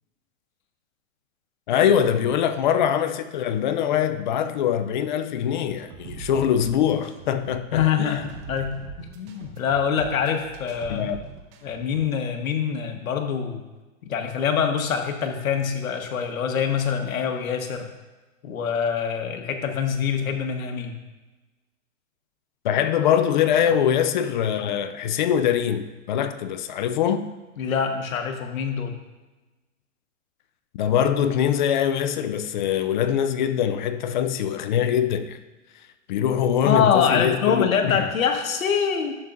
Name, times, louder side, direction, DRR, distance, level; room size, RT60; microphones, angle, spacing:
voice 1, 1.7-8.2 10.9-11.2 22.6-27.3 30.7-35.4 36.1-38.1, left 9 dB, 40° left, 0.4 m, -23 dB
sound 1, 5.9-12.0, right 6 dB, 30° right, 0.8 m, -41 dB
voice 2, 7.7-11.1 11.6-13.6 14.0-17.9 18.4-20.9 27.6-28.9 36.6-39.2, left 7 dB, 85° left, 1.3 m, -25 dB
11.0 x 7.2 x 2.5 m
hypercardioid pair, 145°, 40 cm